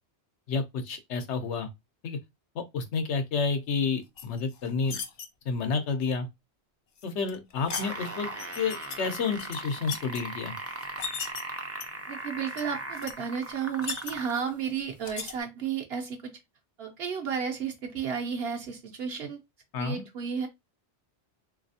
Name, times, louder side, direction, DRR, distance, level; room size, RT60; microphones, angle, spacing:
voice 1, 0.5-1.7 2.0-2.2 2.5-5.0 5.4-6.3 7.0-8.3 8.6-10.5 19.7-20.1, left 4 dB, 85° left, 1.0 m, -30 dB
sound 1, 4.2-5.3 7.0-7.9 8.4-9.0 9.3-10.2 10.8-11.4 11.8-12.2 12.6-12.7 12.9-13.1 13.5-14.5 15.0-15.3, left 6 dB, 55° left, 0.5 m, -37 dB
sound 2, 7.6-14.5 15.3-15.4, right 2 dB, 25° right, 0.3 m, -38 dB
voice 2, 12.1-16.3 16.8-19.4 19.8-20.5, right 7 dB, 65° right, 0.9 m, -33 dB
3.2 x 2.7 x 2.6 m
omnidirectional pair, 1.1 m